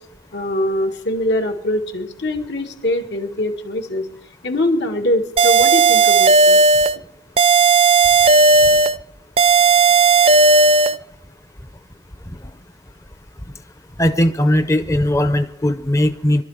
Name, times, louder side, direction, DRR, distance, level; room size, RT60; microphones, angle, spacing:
voice 1, 0.3-4.1 4.4-6.6, left 1 dB, 80° left, 3 dB, 2.2 m, -22 dB
sound 1, 5.4-7.0 7.4-9.0 9.4-11.0, right 4 dB, 35° right, 0.5 m, -13 dB
voice 2, 14.0-16.4, left 1 dB, 15° left, 11 dB, 0.6 m, -18 dB
22.5 x 12.0 x 4.9 m, 0.83 s
head